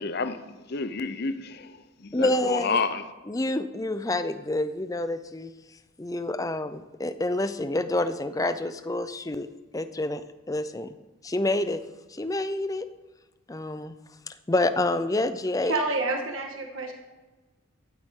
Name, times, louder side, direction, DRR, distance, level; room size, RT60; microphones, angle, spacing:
voice 1, 0.0-3.0, left 4 dB, 50° left, 0.7 m, -30 dB
voice 2, 2.1-2.8 3.3-5.5 6.0-9.5 9.7-10.2 10.5-10.9 11.2-11.8 12.1-12.9 13.5-13.9 14.3-15.7, left 2 dB, 15° left, 0.5 m, -28 dB
voice 3, 15.6-16.9, right 2 dB, 75° right, 1.5 m, -28 dB
13.0 x 12.0 x 3.7 m
head